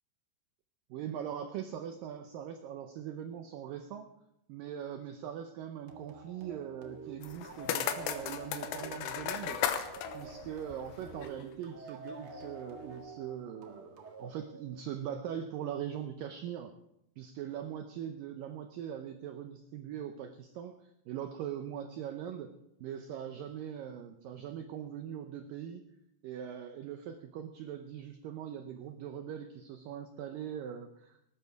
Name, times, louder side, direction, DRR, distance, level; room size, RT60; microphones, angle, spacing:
voice 1, 0.9-4.1 4.5-9.6 10.1-16.7 17.2-22.5 22.8-25.8 26.2-31.3, right 9 dB, 90° right, 7 dB, 1.9 m, -41 dB
sound 1, 5.9-15.1, right 3 dB, 50° right, 1.6 m, -49 dB
sound 2, 7.2-11.4, left 9 dB, 80° left, 3.1 m, -36 dB
19.0 x 12.5 x 4.6 m, 0.82 s
omnidirectional pair, 5.0 m